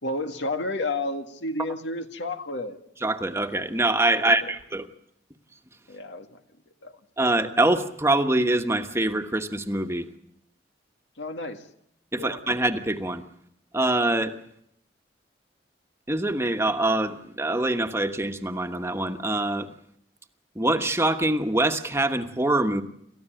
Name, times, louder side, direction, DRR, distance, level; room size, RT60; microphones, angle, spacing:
voice 1, 0.0-2.8 4.2-4.5 5.9-6.3 6.8-6.9 11.2-11.6 12.2-12.4, left 2 dB, 85° left, 6 dB, 2.0 m, -31 dB
voice 2, 3.0-4.9 7.2-10.1 12.1-13.2 13.7-14.3 16.1-19.7 20.5-22.8, right 2 dB, 15° right, 6 dB, 1.3 m, -24 dB
28.5 x 14.0 x 9.1 m, 0.74 s
head